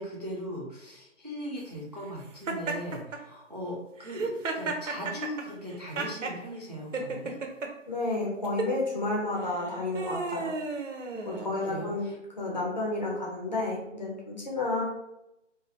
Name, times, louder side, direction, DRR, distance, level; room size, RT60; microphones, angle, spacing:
voice 1, 0.0-7.4 10.9-12.2, equal, 35° right, -3 dB, 0.4 m, -39 dB
Laughter, 2.5-3.2 4.0-6.4 6.9-7.7 8.4-8.7 9.5-11.7, right 3 dB, 85° right, 0.6 m, -33 dB
voice 2, 7.9-10.5 11.2-12.1 12.4-14.8, left 2 dB, 35° left, -3 dB, 0.6 m, -31 dB
2.5 x 2.1 x 2.7 m, 0.87 s
figure-of-eight pair, 165°, 37 cm